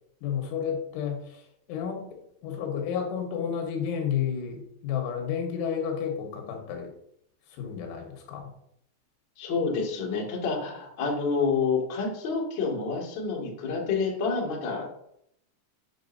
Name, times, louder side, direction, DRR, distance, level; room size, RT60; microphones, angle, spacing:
voice 1, 0.2-1.4 1.7-2.0 2.4-6.9 7.6-8.5, left 7 dB, 80° left, 3 dB, 3.6 m, -31 dB
voice 2, 9.4-14.9, left 4 dB, 60° left, -3 dB, 1.2 m, -28 dB
8.1 x 6.4 x 2.6 m, 0.74 s
omnidirectional pair, 5.4 m